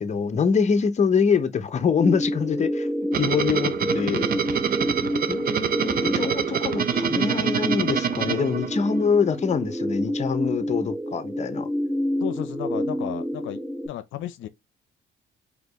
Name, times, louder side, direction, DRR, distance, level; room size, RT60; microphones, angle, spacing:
voice 1, 0.0-2.9 3.2-4.2 5.3-11.7, left 6 dB, 35° left, 0.7 m, -24 dB
sound 1, 2.0-13.9, equal, 5° right, 0.4 m, -28 dB
sound 2, 3.1-9.1, right 8 dB, 50° right, 0.6 m, -26 dB
voice 2, 5.0-5.4 12.2-14.5, left 12 dB, 80° left, 0.5 m, -34 dB
4.2 x 2.9 x 3.0 m
cardioid pair, 90°, 20 cm